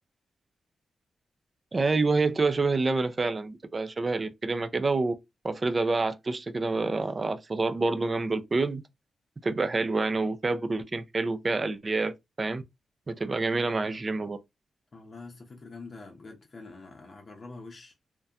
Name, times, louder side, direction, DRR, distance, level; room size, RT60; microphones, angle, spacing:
voice 1, 1.7-5.1 5.4-8.8 9.4-12.1 12.4-12.6 13.1-14.4, right 3 dB, 30° right, 0.4 m, -27 dB
voice 2, 14.9-17.9, left 3 dB, 40° left, 0.7 m, -45 dB
2.7 x 2.1 x 2.4 m
cardioid pair, 105°, 0 cm